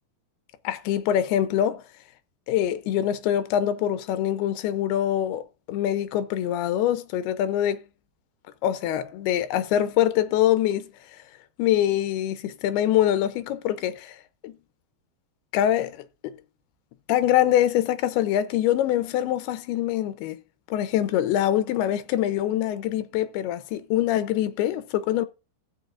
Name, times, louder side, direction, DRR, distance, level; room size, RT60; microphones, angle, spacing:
voice 1, 0.6-1.8 2.5-7.8 8.6-10.9 11.6-14.2 14.4-14.6 15.5-16.4 17.1-20.4 20.7-25.3, left 11 dB, 90° left, 2.7 m, -24 dB
15.5 x 7.8 x 2.5 m
omnidirectional pair, 4.4 m